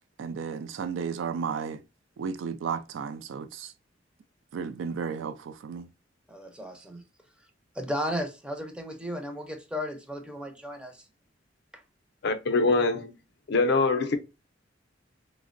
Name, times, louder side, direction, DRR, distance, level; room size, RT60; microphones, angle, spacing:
voice 1, 0.2-1.8 2.2-3.7 4.5-5.9, right 6 dB, 90° right, 0.3 m, -33 dB
voice 2, 6.3-7.0 7.7-11.0, equal, 5° right, 0.4 m, -34 dB
voice 3, 12.2-13.1 13.5-14.2, left 3 dB, 60° left, 0.4 m, -23 dB
3.4 x 2.0 x 2.4 m
head